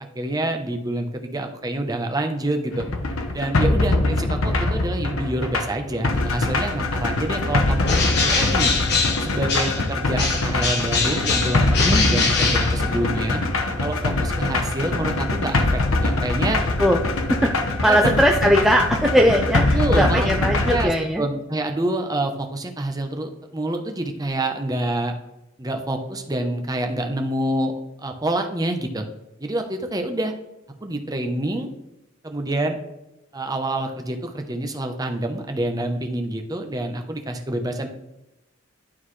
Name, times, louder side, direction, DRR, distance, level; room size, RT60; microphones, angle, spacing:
voice 1, 0.2-2.8 3.3-7.9 8.3-8.7 9.2-13.4 13.8-16.6 17.9-18.2 19.7-20.3 20.6-20.9 21.2-25.1 25.6-27.7 28.0-29.1 29.4-30.3 30.8-31.7 32.2-32.8 33.3-37.9, right 1 dB, 20° right, 4 dB, 0.8 m, -27 dB
sound 1, 2.7-20.8, left 2 dB, 90° left, 0.9 m, -23 dB
Bird, 7.8-9.9 10.2-13.2, left 4 dB, 55° left, 1.4 m, -23 dB
voice 2, 11.8-12.3 16.8-17.0 17.4-17.5 17.8-21.2, equal, ahead, 1 dB, 0.4 m, -19 dB
11.5 x 3.9 x 3.2 m, 0.91 s
head